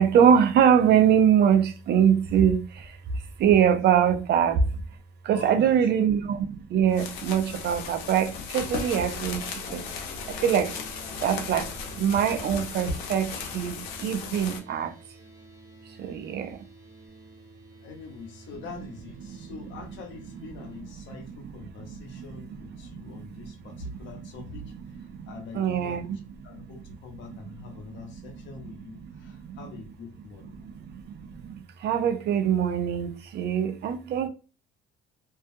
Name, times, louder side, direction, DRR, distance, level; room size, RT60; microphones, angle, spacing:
voice 1, 0.0-4.8 5.2-9.8 10.3-10.7 11.2-11.7 12.0-14.9 16.0-16.6 19.3-19.4 21.2-21.3 21.9-22.4 22.8-24.1 25.1-25.3 25.5-26.2 26.4-26.6 27.9-28.0 29.0-29.6 30.5-34.3, right 8 dB, 55° right, 0.5 m, -24 dB
voice 2, 5.3-6.1 17.8-26.1 26.4-30.8, left 4 dB, 70° left, 0.9 m, -44 dB
sound 1, 6.9-14.6, left 5 dB, 90° left, 0.5 m, -36 dB
sound 2, 9.3-20.8, right 3 dB, 15° right, 0.8 m, -51 dB
2.4 x 2.3 x 2.5 m
supercardioid pair, 80°, 20 cm